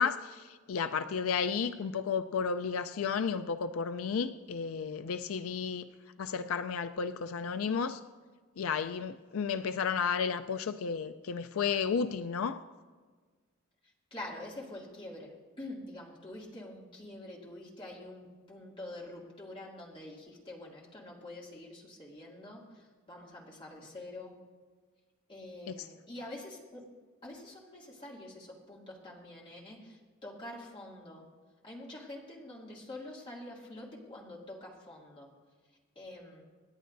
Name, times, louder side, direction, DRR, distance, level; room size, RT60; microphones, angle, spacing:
voice 1, 0.0-5.9 6.2-8.0 8.6-12.6 25.7-25.9, left 6 dB, 80° left, 10 dB, 0.4 m, -32 dB
voice 2, 14.1-24.4 25.3-26.8 27.2-31.3 31.6-35.3 36.0-36.4, left 1 dB, 25° left, -3 dB, 2.4 m, -46 dB
27.5 x 10.0 x 2.6 m, 1.4 s
head